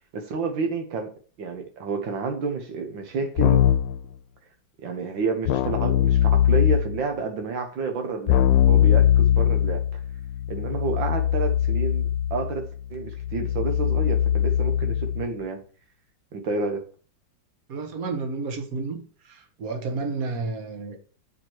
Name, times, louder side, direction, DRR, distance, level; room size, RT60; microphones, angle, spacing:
voice 1, 0.1-1.1 1.4-3.6 4.8-10.0 10.5-15.6 16.3-16.9, right 4 dB, 85° right, 2.0 m, -30 dB
Keyboard (musical), 3.4-4.0 5.5-7.0 8.3-15.3, left 10 dB, 85° left, 1.3 m, -21 dB
voice 2, 17.7-19.0 19.3-21.0, right 3 dB, 50° right, 1.5 m, -31 dB
7.4 x 4.5 x 4.6 m
omnidirectional pair, 2.0 m